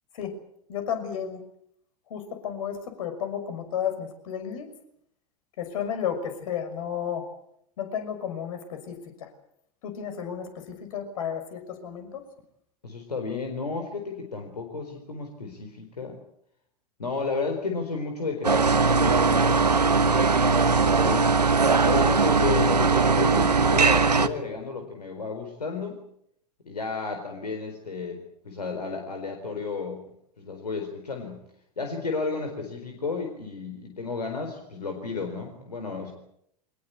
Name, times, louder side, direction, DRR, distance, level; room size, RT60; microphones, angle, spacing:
voice 1, 0.7-1.4 2.1-4.7 5.6-7.3 7.8-9.3 9.8-12.2, left 8 dB, 55° left, 7 dB, 6.1 m, -32 dB
voice 2, 12.8-16.2 17.0-20.4 20.7-21.3 21.8-26.0 26.7-30.0 30.4-31.4 31.8-36.1, left 4 dB, 75° left, 4 dB, 4.3 m, -32 dB
sound 1, 18.4-24.3, right 4 dB, 80° right, 1.4 m, -20 dB
25.0 x 20.5 x 8.5 m, 0.72 s
figure-of-eight pair, 90°, 20 cm